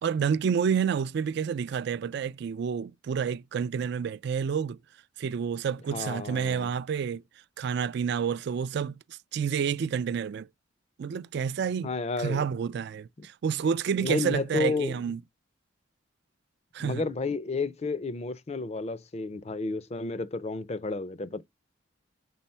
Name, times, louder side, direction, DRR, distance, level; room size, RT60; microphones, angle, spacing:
voice 1, 0.0-4.8 5.2-7.2 7.6-9.0 9.3-10.5 11.0-11.9 12.2-15.2 16.7-17.0, right 7 dB, 55° right, 0.3 m, -29 dB
voice 2, 5.9-6.7 11.8-12.4 13.2-13.3 14.0-15.0 16.8-21.4, left 3 dB, 30° left, 0.4 m, -31 dB
5.5 x 4.0 x 4.2 m
head